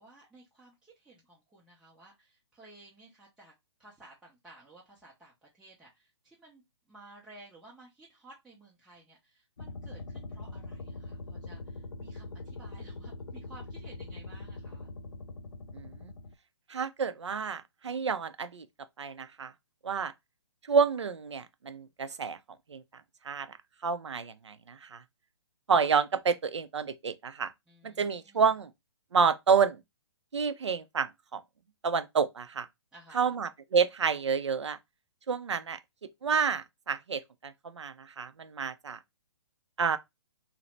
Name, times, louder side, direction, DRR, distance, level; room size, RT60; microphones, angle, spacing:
voice 1, 0.0-3.5 3.8-6.6 6.9-14.9 27.7-28.4 32.9-33.3, right 2 dB, 5° right, 0.5 m, -55 dB
sound 1, 9.6-16.3, left 2 dB, 85° left, 0.4 m, -42 dB
voice 2, 15.7-16.1 16.7-18.7 19.0-19.5 19.8-20.1 20.7-22.4 22.7-22.8 23.2-23.6 23.8-25.0 25.7-27.5 27.8-28.7 29.1-29.8 30.3-31.4 31.8-32.7 33.1-34.8 35.3-35.8 36.2-39.0 39.8-40.0, right 6 dB, 85° right, 0.4 m, -29 dB
2.7 x 2.0 x 3.1 m
figure-of-eight pair, 130°, 14 cm